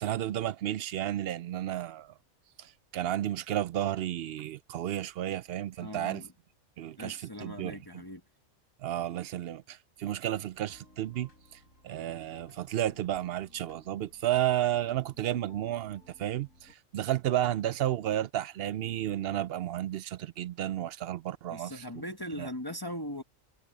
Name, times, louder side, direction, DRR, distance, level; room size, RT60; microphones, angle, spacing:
voice 1, 0.0-2.1 2.6-6.2 6.8-8.0 8.8-11.3 11.8-21.8 22.4-22.5, right 12 dB, 65° right, 0.6 m, -32 dB
voice 2, 5.8-6.3 7.0-8.2 21.5-23.2, equal, 20° left, 1.2 m, -39 dB
sound 1, 10.5-16.7, left 1 dB, 75° left, 5.0 m, -59 dB
omnidirectional pair, 1.3 m